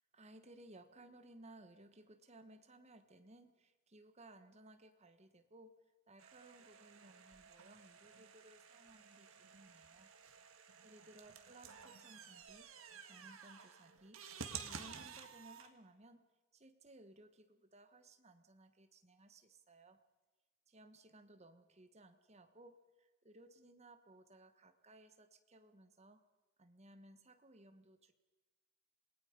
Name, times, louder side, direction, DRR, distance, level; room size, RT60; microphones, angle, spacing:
voice 1, 0.1-5.7 6.1-10.1 10.8-12.7 13.0-14.2 14.6-16.2 16.5-20.0 20.7-26.2 26.6-28.1, right 1 dB, 30° right, 8 dB, 1.3 m, -61 dB
sound 1, 6.2-15.7, right 6 dB, 70° right, 1.8 m, -53 dB
27.5 x 19.0 x 5.3 m, 1.2 s
head